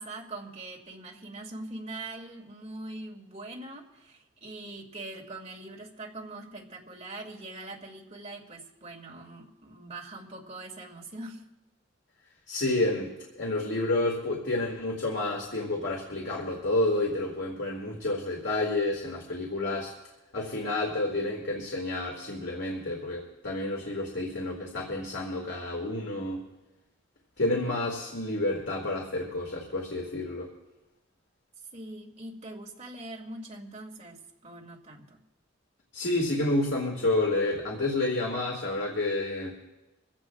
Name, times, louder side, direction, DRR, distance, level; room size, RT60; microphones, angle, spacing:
voice 1, 0.0-11.4 31.7-35.2, right 2 dB, 35° right, -1 dB, 2.5 m, -42 dB
voice 2, 12.5-13.1 13.4-19.9 20.3-26.4 27.4-30.5 35.9-39.6, left 2 dB, 65° left, -1 dB, 2.2 m, -29 dB
24.5 x 16.0 x 2.4 m, 1.0 s
head